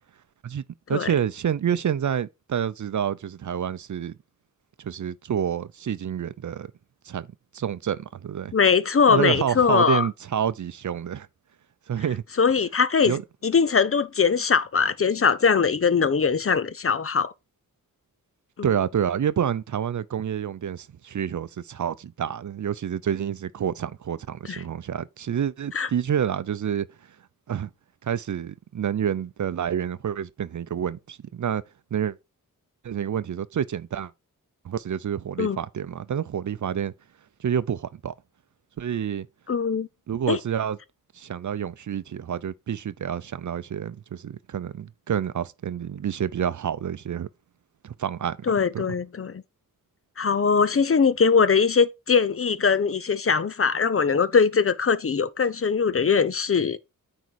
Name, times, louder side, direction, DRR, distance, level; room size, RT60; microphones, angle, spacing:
voice 1, 0.9-4.1 4.8-6.7 7.1-7.3 7.5-8.5 9.1-11.3 11.9-12.2 13.1-13.2 18.6-26.9 27.5-27.7 28.0-31.6 31.9-32.2 32.8-34.1 34.6-36.9 37.4-38.1 38.8-39.3 40.1-40.8 41.1-47.3 47.8-48.4 48.7-48.9, right 8 dB, 60° right, 0.6 m, -28 dB
voice 2, 8.5-10.1 12.4-13.2 13.4-17.3 18.6-18.7 24.5-24.6 25.7-25.9 35.4-35.6 39.5-39.9 40.3-40.4 48.5-49.4 50.2-56.8, left 5 dB, 40° left, 0.6 m, -21 dB
9.4 x 3.8 x 4.6 m
cardioid pair, 75°, 34 cm